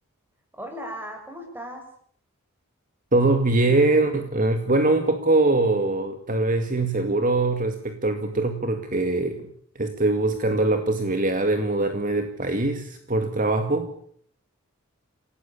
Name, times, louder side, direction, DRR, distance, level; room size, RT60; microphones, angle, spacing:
voice 1, 0.6-1.8, equal, 10° right, 4 dB, 7.1 m, -36 dB
voice 2, 3.1-9.5 9.8-13.9, right 2 dB, 40° right, 7 dB, 2.1 m, -22 dB
28.5 x 18.0 x 8.6 m, 0.63 s
head